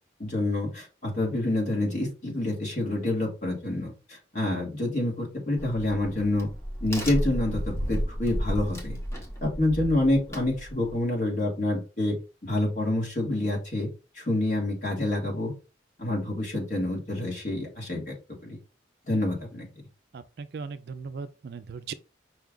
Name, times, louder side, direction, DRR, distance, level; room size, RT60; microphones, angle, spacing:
voice 1, 0.2-6.5 6.8-9.0 9.4-12.2 12.4-13.9 14.1-15.5 16.0-18.1 18.4-18.6 19.1-19.7, left 1 dB, 40° left, 1.8 m, -27 dB
Crack, 5.6-11.0, equal, 15° left, 0.9 m, -33 dB
voice 2, 20.1-21.9, right 5 dB, 55° right, 0.3 m, -38 dB
5.5 x 2.4 x 3.7 m
head